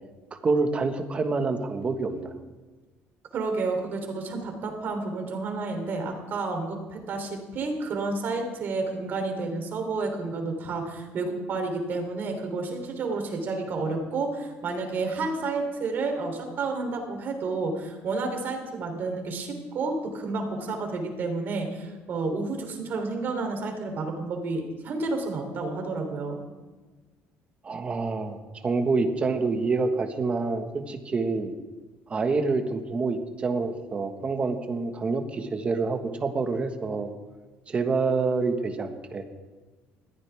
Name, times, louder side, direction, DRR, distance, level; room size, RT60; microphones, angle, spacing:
voice 1, 0.4-2.3 27.6-31.5 32.1-37.1 37.7-39.2, right 4 dB, 25° right, 6 dB, 1.5 m, -27 dB
voice 2, 3.3-26.4, right 3 dB, 45° right, 3 dB, 3.4 m, -30 dB
21.0 x 15.0 x 3.6 m, 1.3 s
cardioid pair, 145°, 5 cm